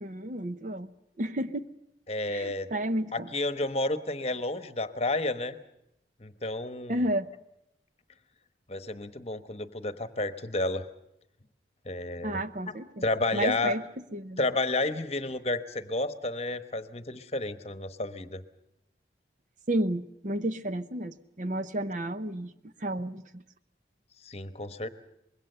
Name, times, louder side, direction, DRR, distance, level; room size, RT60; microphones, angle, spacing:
voice 1, 0.0-1.7 2.3-3.3 6.9-7.3 12.2-13.0 13.3-13.8 14.1-14.4 19.7-22.5 22.8-23.4, right 1 dB, 45° right, 11 dB, 0.8 m, -31 dB
voice 2, 2.1-2.7 3.1-5.6 6.2-7.0 8.7-10.8 11.8-12.4 13.0-13.7 14.4-18.4 24.2-24.9, left 2 dB, 35° left, 11 dB, 1.0 m, -31 dB
25.0 x 21.5 x 6.7 m, 0.84 s
head